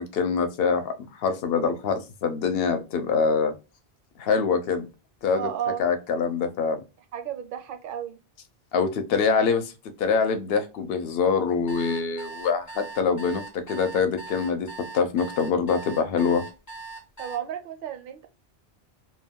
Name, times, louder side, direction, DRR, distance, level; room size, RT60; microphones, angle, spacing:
voice 1, 0.0-3.5 4.2-4.9 5.2-5.5 5.8-6.8 8.7-9.7 10.0-16.4, left 5 dB, 70° left, 0.8 m, -24 dB
voice 2, 5.3-5.9 7.1-8.2 17.2-18.3, right 10 dB, 65° right, 0.7 m, -32 dB
sound 1, 11.5-17.4, right 4 dB, 25° left, 0.4 m, -40 dB
2.3 x 2.2 x 3.4 m
omnidirectional pair, 1.1 m